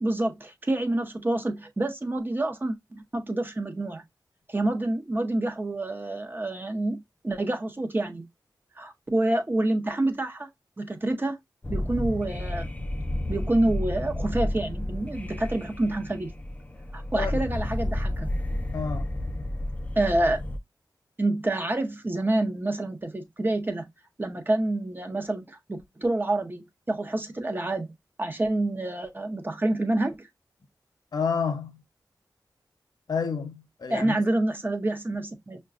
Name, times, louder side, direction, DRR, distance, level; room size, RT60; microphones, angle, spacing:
voice 1, 0.0-4.0 4.5-8.3 8.8-10.5 10.8-11.4 11.7-12.7 13.3-16.3 16.9-18.3 20.0-20.4 21.2-23.9 24.2-27.9 28.2-30.3 33.9-35.6, right 2 dB, 25° right, 0.7 m, -27 dB
sound 1, 11.6-20.6, left 1 dB, 20° left, 0.4 m, -31 dB
voice 2, 17.1-17.5 18.7-19.1 31.1-31.8 33.1-34.2, left 5 dB, 65° left, 0.7 m, -29 dB
5.5 x 2.2 x 2.4 m
wide cardioid pair, 90°, 7 cm